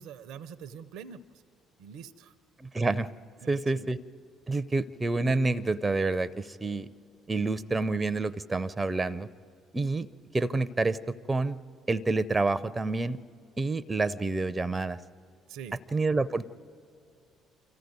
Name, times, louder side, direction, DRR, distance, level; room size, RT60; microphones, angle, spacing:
voice 1, 0.0-1.4 1.8-2.3 3.4-3.9 15.5-15.8, right 7 dB, 65° right, 17 dB, 0.6 m, -44 dB
voice 2, 2.6-3.1 3.5-4.0 4.5-6.9 7.3-9.3 9.7-10.1 10.3-11.6 11.9-13.2 13.6-15.0 15.9-16.5, right 3 dB, 20° right, 17 dB, 0.6 m, -28 dB
25.0 x 14.5 x 9.4 m, 2.4 s
hypercardioid pair, 50°, 0 cm